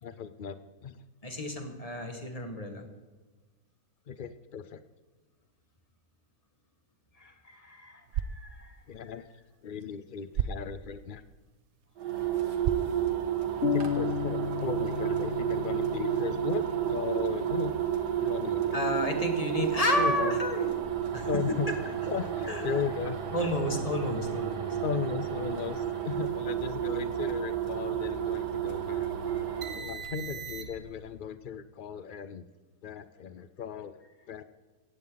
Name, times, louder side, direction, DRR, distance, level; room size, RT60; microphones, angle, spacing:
voice 1, 0.0-1.0 4.1-4.8 8.9-9.3 9.6-11.2 13.7-17.7 18.2-18.9 20.0-20.4 21.3-23.5 24.8-29.1 29.8-32.4 32.8-34.4, left 7 dB, 75° left, 12 dB, 0.4 m, -36 dB
voice 2, 1.2-2.8 7.2-8.8 18.7-20.7 21.1-21.3 21.7-21.8 22.5-22.6 23.3-24.8 29.0-29.8, left 1 dB, 20° left, 4 dB, 2.0 m, -32 dB
sound 1, 7.9-14.0, right 8 dB, 65° right, 0.7 m, -38 dB
sound 2, 12.0-31.0, right 10 dB, 85° right, 2.1 m, -31 dB
sound 3, 13.6-17.4, left 9 dB, 55° left, 0.8 m, -34 dB
18.0 x 15.0 x 4.0 m, 1.3 s
omnidirectional pair, 1.7 m